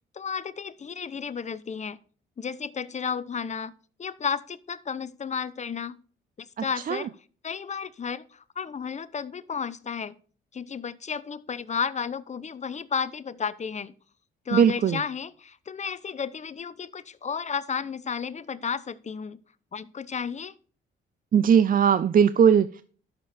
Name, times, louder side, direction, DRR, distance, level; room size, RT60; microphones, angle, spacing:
voice 1, 0.1-2.0 2.4-3.7 4.0-6.0 6.6-7.1 7.4-10.1 10.5-13.9 14.5-19.4 19.7-20.5, left 6 dB, 35° left, 15 dB, 0.8 m, -32 dB
voice 2, 6.6-7.1 14.5-15.0 21.3-22.8, right 7 dB, 45° right, 14 dB, 0.6 m, -20 dB
12.0 x 6.8 x 4.2 m, 0.41 s
cardioid pair, 90°, 20 cm